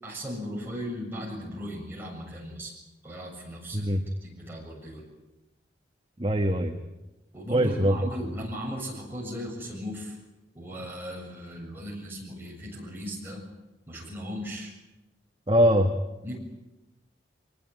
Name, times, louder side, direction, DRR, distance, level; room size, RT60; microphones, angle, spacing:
voice 1, 0.0-2.7 3.0-3.9 4.2-5.0 7.3-10.2 10.5-13.4 13.9-14.7 16.2-16.4, equal, 10° right, -2 dB, 7.0 m, -37 dB
voice 2, 3.7-4.1 6.2-6.8 7.5-8.0 8.3-8.4 15.5-16.0, equal, 30° right, 4 dB, 1.4 m, -22 dB
22.5 x 20.0 x 9.2 m, 1.0 s
head